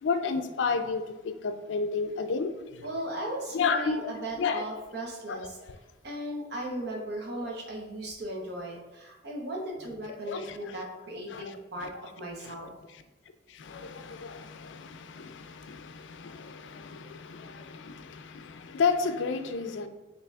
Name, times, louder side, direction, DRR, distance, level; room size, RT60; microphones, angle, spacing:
voice 1, 0.0-2.8 3.5-4.1 4.4-4.6 5.3-5.4 10.3-10.8 11.3-11.9 12.4-12.6 13.5-19.9, left 5 dB, 80° left, 0.4 m, -32 dB
voice 2, 2.8-5.6 6.0-11.9 12.2-12.7, right 1 dB, 60° right, 0.9 m, -37 dB
6.6 x 2.8 x 2.4 m
head